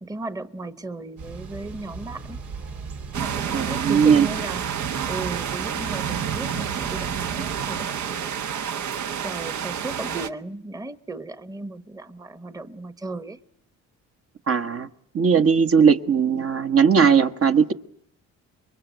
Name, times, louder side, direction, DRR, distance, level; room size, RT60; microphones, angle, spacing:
voice 1, 0.0-2.4 3.2-4.6 5.0-8.4 9.2-13.4, right 2 dB, 10° right, 1.1 m, -35 dB
Thunder / Bicycle, 1.2-7.7, right 4 dB, 90° right, 4.3 m, -38 dB
sound 1, 3.1-10.3, right 8 dB, 70° right, 1.2 m, -29 dB
voice 2, 3.5-4.3 14.5-14.9 15.1-17.7, right 6 dB, 50° right, 1.3 m, -18 dB
26.5 x 22.5 x 9.2 m
cardioid pair, 90°, 30 cm